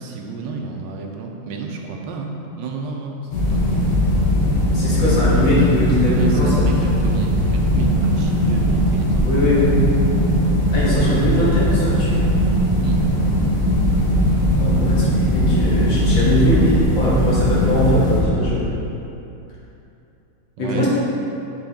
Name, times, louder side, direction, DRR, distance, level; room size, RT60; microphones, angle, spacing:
voice 1, 0.0-3.6 6.0-9.6 12.8-13.0 20.6-20.9, right 4 dB, 75° right, 1 dB, 1.2 m, -31 dB
sound 1, 3.3-18.2, equal, 65° left, 1.7 m, -19 dB
voice 2, 4.7-6.7 9.2-9.8 10.7-12.2 14.6-18.7 20.6-20.9, equal, 80° left, -9 dB, 2.4 m, -21 dB
Breathing, 10.8-11.0 11.3-11.7 12.1-12.5 12.8-13.2 13.6-14.0 14.3-14.7 15.1-15.5 15.8-16.2 16.6-17.0 17.4-17.7 18.1-18.5, left 1 dB, 35° left, 1.3 m, -29 dB
7.6 x 4.2 x 3.5 m, 2.8 s
omnidirectional pair, 2.0 m